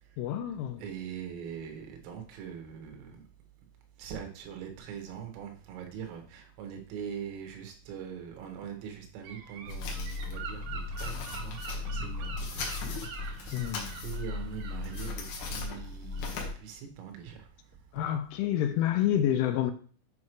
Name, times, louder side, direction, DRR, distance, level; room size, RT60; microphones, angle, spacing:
voice 1, 0.2-0.8 13.5-14.0 17.9-19.7, left 11 dB, 85° left, 2.9 m, -28 dB
voice 2, 0.8-3.2 4.0-12.9 13.3-13.8 14.0-17.5, right 8 dB, 85° right, 4.1 m, -42 dB
Gull seagull / Wind, 9.2-16.5, right 5 dB, 65° right, 2.3 m, -45 dB
sound 1, 9.7-16.5, left 4 dB, 65° left, 2.9 m, -37 dB
9.3 x 5.4 x 3.1 m
omnidirectional pair, 5.8 m